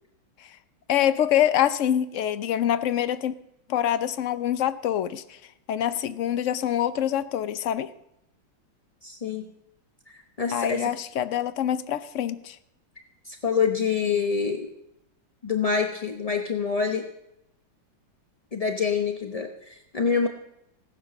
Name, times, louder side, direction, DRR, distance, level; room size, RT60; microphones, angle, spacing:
voice 1, 0.9-3.3 3.7-5.4 5.7-7.9 10.5-12.6, left 10 dB, 80° left, 13 dB, 0.6 m, -25 dB
voice 2, 9.0-9.5 10.1-10.9 13.2-14.7 15.4-17.0 18.5-20.3, left 6 dB, 35° left, 4 dB, 0.6 m, -26 dB
16.5 x 10.5 x 6.7 m, 0.83 s
omnidirectional pair, 2.1 m